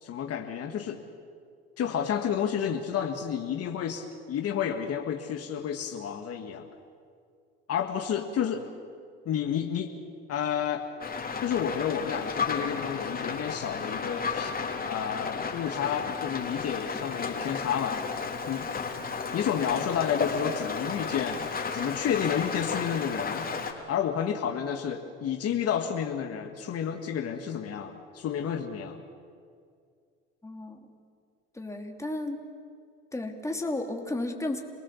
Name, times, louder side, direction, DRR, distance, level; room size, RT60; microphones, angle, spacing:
voice 1, 0.0-1.0 1.8-6.7 7.7-8.7 9.3-9.9 10.3-10.8 11.4-14.6 14.9-18.0 18.5-18.7 19.3-21.5 21.7-23.5 23.9-29.0, left 8 dB, 50° left, 4 dB, 1.8 m, -30 dB
Rain, 11.0-23.7, left 5 dB, 30° left, 3.6 m, -33 dB
voice 2, 30.4-30.8 31.5-32.4 33.1-34.6, left 2 dB, 10° left, 2 dB, 2.9 m, -33 dB
28.0 x 18.5 x 7.2 m, 2.3 s
hypercardioid pair, 80°, 31 cm